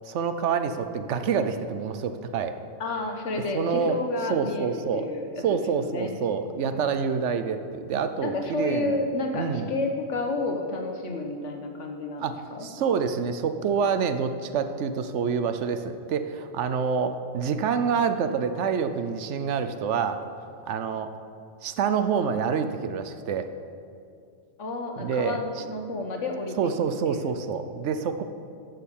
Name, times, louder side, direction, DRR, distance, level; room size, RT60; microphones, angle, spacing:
voice 1, 0.0-2.5 3.5-4.0 4.3-5.1 5.4-9.0 9.3-9.7 12.2-20.2 20.7-21.1 21.6-23.5 25.0-25.4 26.6-28.2, right 6 dB, 75° right, 9 dB, 1.0 m, -27 dB
voice 2, 2.8-6.1 6.7-7.0 8.2-12.2 12.5-12.7 24.6-26.7 27.0-27.3, left 2 dB, 85° left, 3 dB, 1.5 m, -31 dB
11.0 x 6.8 x 7.2 m, 2.4 s
omnidirectional pair, 1.2 m